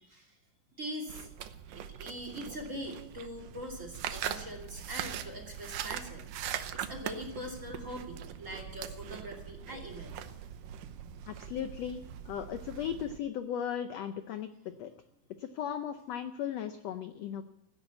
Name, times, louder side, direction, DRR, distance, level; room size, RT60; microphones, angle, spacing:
voice 1, 0.8-1.3 1.7-10.3, equal, 25° right, 3 dB, 2.8 m, -42 dB
sound 1, 1.1-13.2, right 10 dB, 80° right, 2.5 m, -41 dB
voice 2, 11.3-14.5 14.8-14.9 15.4-17.4, left 9 dB, 75° left, 9 dB, 1.5 m, -37 dB
16.0 x 10.5 x 8.2 m, 0.90 s
omnidirectional pair, 3.8 m